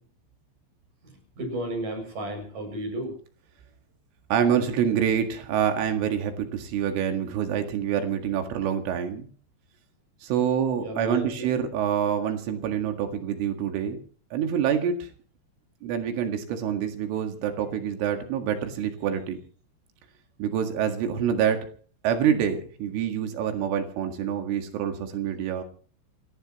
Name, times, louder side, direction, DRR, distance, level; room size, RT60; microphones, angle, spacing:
voice 1, 1.0-3.1 10.8-11.5, right 1 dB, 40° right, 3 dB, 8.4 m, -33 dB
voice 2, 4.3-9.3 10.2-14.0 14.3-15.1 15.8-19.4 20.4-21.7 22.0-25.6, right 8 dB, 80° right, 5 dB, 4.4 m, -26 dB
29.5 x 14.5 x 3.1 m, 0.41 s
omnidirectional pair, 5.7 m